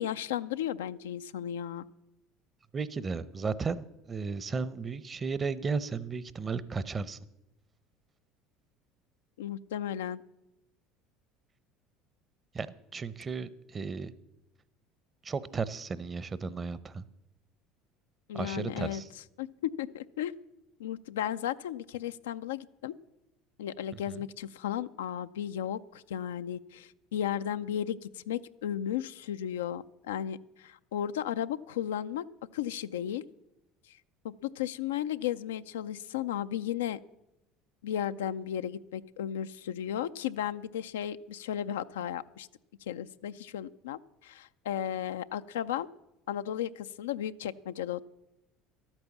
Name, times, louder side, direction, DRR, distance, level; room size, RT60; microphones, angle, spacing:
voice 1, 0.0-1.8 9.4-10.2 18.3-19.0 19.4-19.5 19.8-20.3 20.8-22.9 23.6-32.2 32.5-33.2 34.2-37.0 37.8-42.5 42.9-45.9 46.3-48.0, left 10 dB, 85° left, 12 dB, 0.4 m, -34 dB
voice 2, 2.7-7.2 12.5-12.7 12.9-14.1 15.2-17.0 18.3-19.1 24.1-24.2, right 5 dB, 30° right, 17 dB, 0.7 m, -34 dB
12.5 x 8.9 x 7.2 m, 0.91 s
hypercardioid pair, 75°, 0 cm